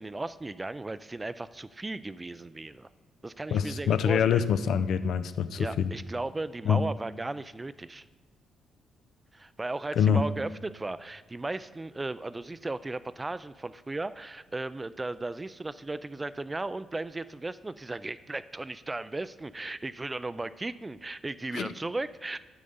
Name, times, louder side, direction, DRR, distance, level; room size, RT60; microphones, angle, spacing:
voice 1, 0.0-2.9 3.2-4.4 5.6-8.1 9.3-22.4, right 2 dB, 20° right, 15 dB, 0.3 m, -36 dB
voice 2, 3.5-5.9 6.7-6.8 10.0-10.2 21.5-21.7, left 7 dB, 70° left, 12 dB, 0.4 m, -25 dB
8.5 x 7.9 x 5.4 m, 1.3 s
cardioid pair, 90°, 0 cm